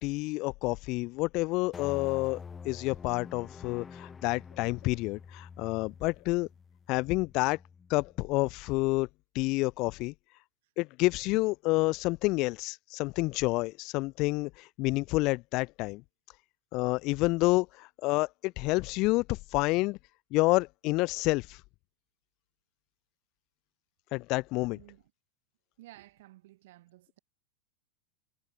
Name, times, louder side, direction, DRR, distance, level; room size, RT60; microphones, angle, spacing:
voice 1, 0.0-2.4 2.6-6.5 6.9-7.6 7.9-9.1 9.3-10.1 10.8-16.0 16.7-20.0 20.3-21.6 24.1-24.8, left 23 dB, 40° left, 0.8 m, -29 dB
sound 1, 1.7-8.2, left 6 dB, 15° left, 1.0 m, -47 dB
voice 2, 24.7-25.1 25.8-27.2, right 17 dB, 55° right, 7.3 m, -54 dB
figure-of-eight pair, 90°, 0 cm